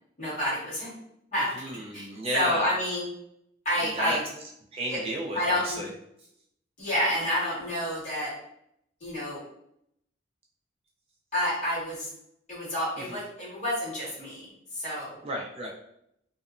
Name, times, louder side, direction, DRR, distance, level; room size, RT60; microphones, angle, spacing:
voice 1, 0.2-0.9 1.3-1.5 1.9-2.1 2.3-3.1 3.6-4.2 4.9-5.0 5.3-5.8 6.8-8.3 9.0-9.4 11.3-12.1 12.5-14.5 14.7-15.2, equal, 40° left, -8 dB, 1.5 m, -29 dB
voice 2, 1.6-2.7 3.7-4.2 4.7-5.9 13.0-13.2 15.2-15.7, right 1 dB, 30° right, -1 dB, 0.3 m, -33 dB
2.8 x 2.0 x 2.4 m, 0.75 s
head